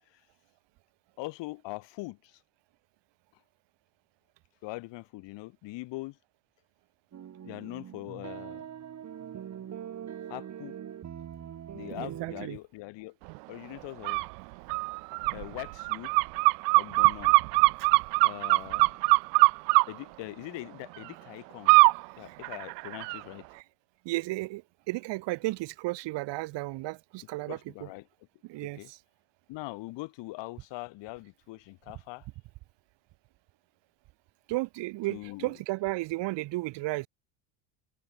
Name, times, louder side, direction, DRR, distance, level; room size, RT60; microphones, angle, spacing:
voice 1, 1.2-2.4 4.6-6.2 7.4-8.7 10.3-10.7 11.7-13.2 13.5-14.2 15.3-16.1 16.7-17.4 18.2-18.9 19.9-21.8 22.2-23.4 27.5-28.1 28.6-28.9 29.5-32.3 35.1-35.5, left 21 dB, 65° left, 5.9 m, -42 dB
sound 1, 7.1-12.5, right 9 dB, 35° right, 5.1 m, -42 dB
voice 2, 11.9-12.6 23.5-23.6 24.0-27.9 28.4-29.0 34.5-37.1, right 20 dB, 65° right, 6.8 m, -34 dB
sound 2, 14.0-14.3 14.7-19.8 21.7-22.0 22.4-23.2, right 31 dB, 90° right, 2.1 m, -22 dB
cardioid pair, 125°, 46 cm